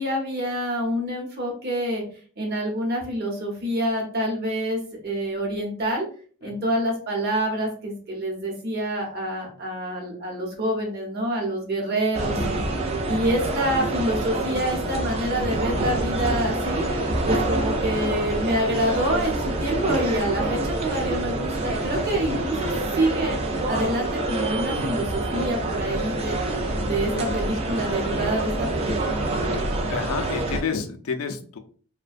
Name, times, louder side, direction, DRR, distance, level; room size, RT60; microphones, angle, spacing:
voice 1, 0.0-2.0 2.4-6.0 6.4-12.6 13.0-16.8 17.3-23.4 23.7-26.4 26.8-29.2, equal, 45° right, -1 dB, 0.8 m, -27 dB
sound 1, 12.1-30.6, right 2 dB, 30° right, 0.3 m, -26 dB
voice 2, 29.9-31.6, left 5 dB, 70° left, 6 dB, 0.4 m, -30 dB
2.4 x 2.1 x 2.5 m, 0.44 s
head